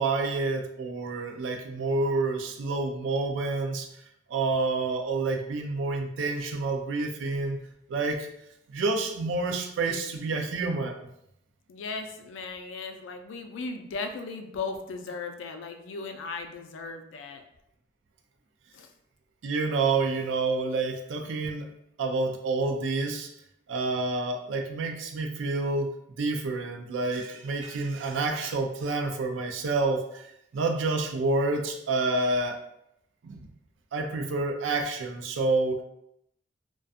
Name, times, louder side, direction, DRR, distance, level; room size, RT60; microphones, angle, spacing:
voice 1, 0.0-3.9 4.3-7.6 7.9-8.3 8.7-11.1 19.4-21.7 22.0-23.3 23.7-25.9 26.2-30.3 30.5-32.6 33.2-33.4 33.9-35.8, right 3 dB, 85° right, 5 dB, 0.4 m, -28 dB
voice 2, 11.7-17.4 18.7-18.9, left 4 dB, 85° left, 5 dB, 0.4 m, -37 dB
2.4 x 2.2 x 2.5 m, 0.78 s
head